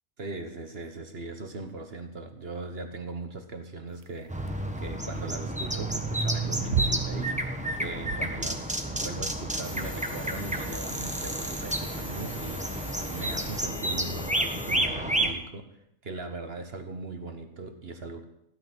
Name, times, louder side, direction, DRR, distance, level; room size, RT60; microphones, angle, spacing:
voice 1, 0.2-7.4 7.8-15.7 16.0-18.2, right 3 dB, 45° right, 7 dB, 1.4 m, -39 dB
sound 1, 3.9-9.5, right 10 dB, 65° right, 1.1 m, -35 dB
sound 2, 4.3-15.3, right 1 dB, 5° right, 1.2 m, -31 dB
sound 3, 9.6-14.8, left 1 dB, 20° left, 1.7 m, -41 dB
16.0 x 11.5 x 6.1 m, 0.77 s
omnidirectional pair, 1.5 m